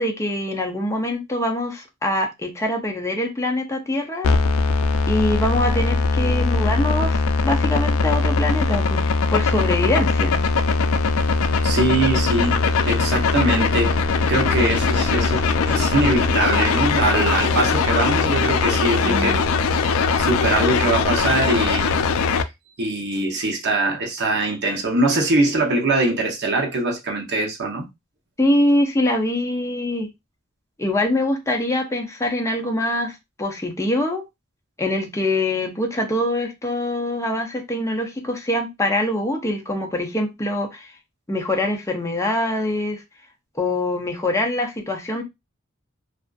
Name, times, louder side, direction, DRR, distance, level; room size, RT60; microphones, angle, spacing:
voice 1, 0.0-4.3 5.1-10.4 19.0-19.4 28.4-30.1 30.8-34.2 34.8-40.9 41.3-43.0 43.6-45.2, left 1 dB, 15° left, 0.5 m, -24 dB
sound 1, 4.2-22.4, left 4 dB, 80° left, 0.3 m, -20 dB
voice 2, 11.6-13.9 14.3-19.4 20.2-22.0 22.8-27.9, right 2 dB, 55° right, 0.7 m, -22 dB
2.5 x 2.3 x 2.3 m
head